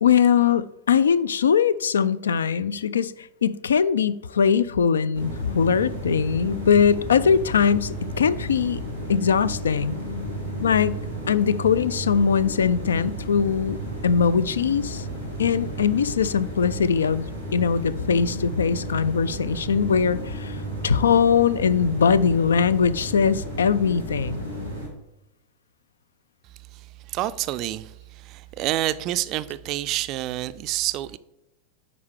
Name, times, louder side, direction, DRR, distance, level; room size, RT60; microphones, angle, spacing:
voice 1, 0.0-8.8 9.1-10.0 10.6-11.0 11.3-13.8 14.0-15.0 15.4-17.3 17.5-24.4, left 7 dB, 70° left, 0.3 m, -21 dB
sound 1, 5.1-24.9, right 1 dB, 85° left, 2.0 m, -33 dB
voice 2, 26.7-31.2, right 14 dB, 40° right, 0.3 m, -28 dB
9.3 x 4.9 x 3.4 m
figure-of-eight pair, 90°, 0 cm